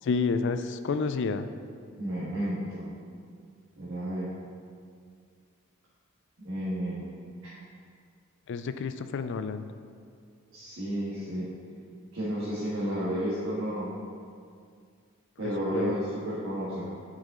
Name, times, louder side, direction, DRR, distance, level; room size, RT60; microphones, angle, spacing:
voice 1, 0.0-1.5 8.5-9.7 15.4-15.9, left 4 dB, 55° left, 10 dB, 0.4 m, -30 dB
voice 2, 2.0-2.9 3.8-4.3 6.4-7.1 7.4-7.5 10.5-11.5 12.1-13.9 15.4-16.9, equal, 60° right, -10 dB, 1.6 m, -32 dB
8.1 x 5.4 x 3.7 m, 2.2 s
head